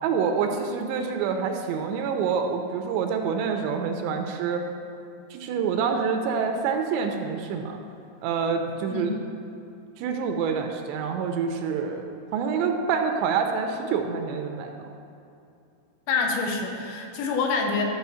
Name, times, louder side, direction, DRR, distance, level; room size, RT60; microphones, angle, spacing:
voice 1, 0.0-4.6 5.3-7.8 8.2-9.1 10.0-12.0 12.3-14.7, right 6 dB, 85° right, 4 dB, 2.8 m, -27 dB
voice 2, 16.1-17.8, left 4 dB, 85° left, 2 dB, 3.4 m, -26 dB
13.0 x 4.9 x 7.0 m, 2.6 s
omnidirectional pair, 5.3 m